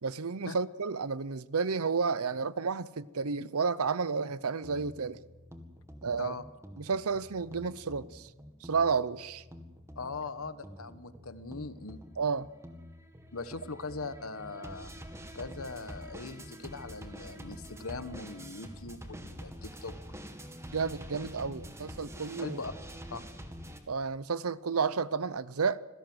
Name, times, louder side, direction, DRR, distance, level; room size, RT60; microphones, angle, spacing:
voice 1, 0.0-5.2 6.0-6.3 6.8-8.3 8.6-9.4 12.2-12.5 20.7-22.6 23.9-25.8, right 5 dB, 80° right, 0.8 m, -31 dB
sound 1, 4.6-23.8, equal, 15° right, 2.1 m, -46 dB
voice 2, 10.0-12.0 13.3-14.9 15.3-19.9 22.4-22.7 23.1-23.2, left 3 dB, 70° left, 1.3 m, -40 dB
26.0 x 17.0 x 8.0 m
head